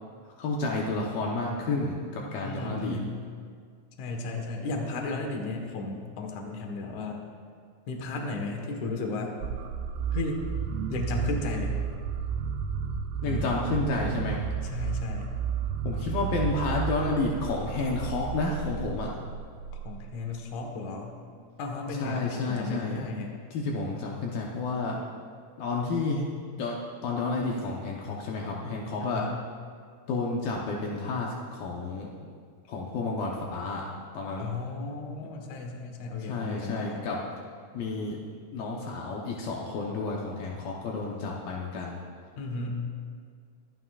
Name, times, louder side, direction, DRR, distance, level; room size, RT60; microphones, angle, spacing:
voice 1, 0.4-3.0 13.2-14.4 15.8-19.1 21.9-23.1 23.5-25.0 25.6-26.3 26.6-26.8 27.0-29.3 30.1-32.1 32.7-33.9 34.1-34.5 36.2-37.2 37.7-38.2 38.5-42.0, left 3 dB, 90° left, -2 dB, 2.0 m, -30 dB
voice 2, 2.4-3.2 4.0-7.2 7.9-9.3 10.1-10.4 10.9-11.7 13.2-13.5 14.6-15.3 19.8-21.1 21.6-23.4 29.0-29.3 34.4-37.0 42.4-42.7, left 3 dB, 70° left, 2 dB, 1.8 m, -34 dB
sound 1, 9.4-20.3, right 7 dB, 85° right, 3.3 m, -32 dB
24.0 x 12.0 x 2.4 m, 2.1 s
omnidirectional pair, 5.6 m